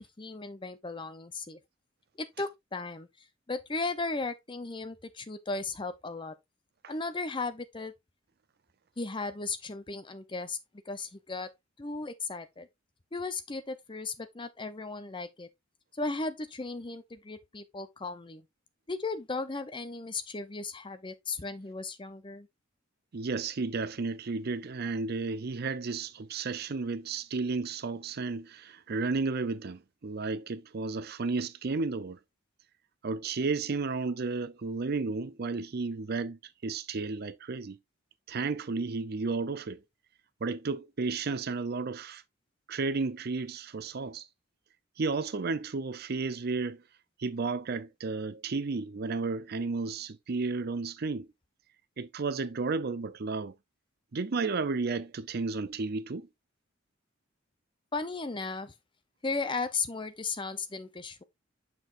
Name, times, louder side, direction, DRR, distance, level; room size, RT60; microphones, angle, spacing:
voice 1, 0.0-1.6 2.2-3.1 3.5-6.3 6.9-7.9 9.0-10.6 10.9-11.5 11.8-12.7 13.1-15.5 16.0-18.4 18.9-22.5 57.9-58.7 59.2-61.2, left 3 dB, 25° left, 0.7 m, -36 dB
voice 2, 23.1-32.2 33.0-37.8 38.3-39.8 40.4-42.2 42.7-44.3 45.0-46.8 47.2-51.3 52.0-53.5 54.1-56.3, right 4 dB, 50° right, 0.5 m, -33 dB
6.9 x 6.0 x 2.5 m
head